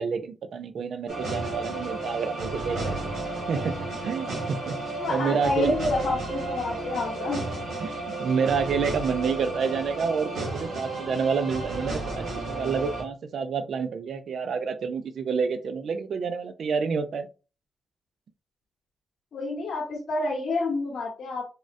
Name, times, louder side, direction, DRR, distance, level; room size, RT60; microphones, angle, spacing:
voice 1, 0.0-3.0 3.5-3.8 4.0-5.7 7.8-17.3, right 5 dB, 75° right, 10 dB, 0.4 m, -28 dB
sound 1, 1.1-13.0, right 2 dB, 90° right, 1.2 m, -33 dB
voice 2, 5.0-7.5 19.3-21.4, left 2 dB, 75° left, -2 dB, 0.9 m, -28 dB
3.7 x 2.1 x 2.5 m, 0.33 s
cardioid pair, 65°, 0 cm